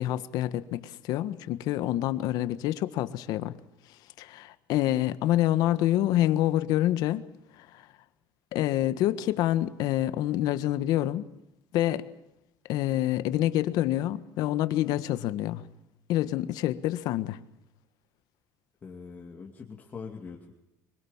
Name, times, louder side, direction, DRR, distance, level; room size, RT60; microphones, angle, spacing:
voice 1, 0.0-3.6 4.2-7.2 7.6-7.8 8.5-11.3 11.7-12.1 12.7-15.6 16.1-17.4, left 13 dB, 60° left, 1.5 m, -27 dB
voice 2, 18.8-20.5, left 5 dB, 20° left, 2.6 m, -42 dB
25.0 x 23.0 x 7.3 m
cardioid pair, 165°, 7 cm